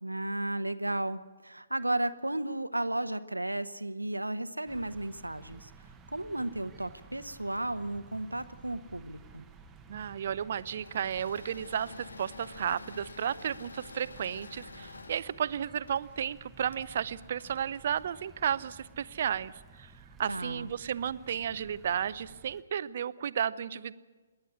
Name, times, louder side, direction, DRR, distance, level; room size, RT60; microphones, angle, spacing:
voice 1, 0.0-5.7 6.1-9.4 20.3-20.7, right 1 dB, 80° right, 12 dB, 1.0 m, -34 dB
sound 1, 4.7-22.6, right 4 dB, 10° right, 1.1 m, -54 dB
voice 2, 9.9-19.9 20.2-23.9, right 8 dB, 45° right, 16 dB, 0.6 m, -33 dB
Engine / Mechanisms, 10.5-18.9, left 3 dB, 65° left, 1.2 m, -50 dB
27.0 x 11.0 x 9.7 m, 1.3 s
figure-of-eight pair, 130°, 0 cm